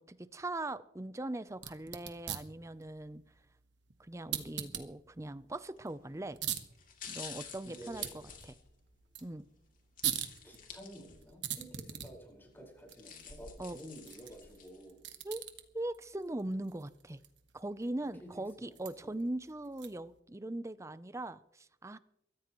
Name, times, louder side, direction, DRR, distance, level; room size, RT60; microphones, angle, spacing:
voice 1, 0.1-3.2 4.0-6.4 7.1-8.6 9.2-9.5 13.6-13.8 15.2-15.4 15.7-17.2 17.5-22.0, right 1 dB, 15° right, 14 dB, 0.6 m, -40 dB
sound 1, 1.5-20.2, right 10 dB, 75° right, 1.5 m, -44 dB
sound 2, 5.8-6.1 6.7-9.3 10.0-11.4 11.8-11.9 12.7-14.9 15.3-15.4, left 6 dB, 50° left, 3.0 m, -50 dB
voice 2, 7.6-8.1 10.4-15.0 18.0-18.3 18.6-19.1, right 1 dB, 10° left, -1 dB, 4.9 m, -51 dB
22.5 x 14.5 x 3.1 m, 0.79 s
head